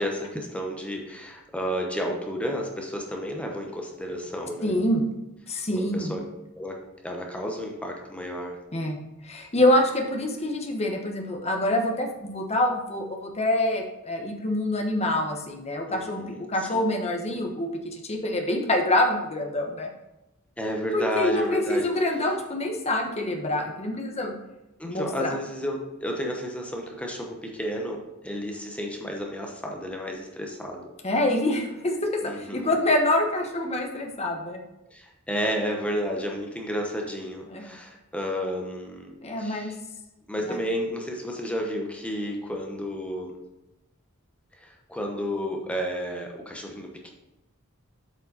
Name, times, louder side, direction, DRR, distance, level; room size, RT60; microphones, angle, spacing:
voice 1, 0.0-4.8 5.8-6.2 6.5-8.6 15.9-16.4 16.7-16.8 20.6-21.9 24.8-30.9 32.2-32.8 34.9-39.8 40.3-43.4 44.6-47.1, equal, 5° left, 1 dB, 0.9 m, -32 dB
voice 2, 4.6-5.0 5.5-6.2 8.7-9.0 9.2-19.9 20.9-24.4 24.8-25.3 31.0-34.6 37.5-37.7 39.2-39.8 40.5-40.6, left 1 dB, 30° left, 2 dB, 1.1 m, -26 dB
8.0 x 5.2 x 4.1 m, 0.96 s
head